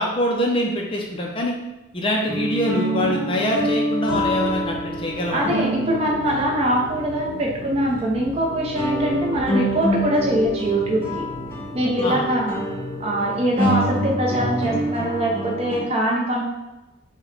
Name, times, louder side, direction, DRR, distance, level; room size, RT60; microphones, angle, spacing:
voice 1, 0.0-1.5 1.9-5.7 12.0-12.3, equal, 25° left, -1 dB, 0.4 m, -24 dB
sound 1, 2.0-7.2 7.9-8.0 8.7-15.8, right 1 dB, 10° left, 0.9 m, -27 dB
sound 2, 4.1-14.2, left 1 dB, 55° left, 0.7 m, -36 dB
voice 2, 5.3-11.2 11.7-12.6 13.0-16.4, right 1 dB, 30° right, -2 dB, 0.6 m, -23 dB
5.6 x 2.2 x 3.9 m, 1.0 s
head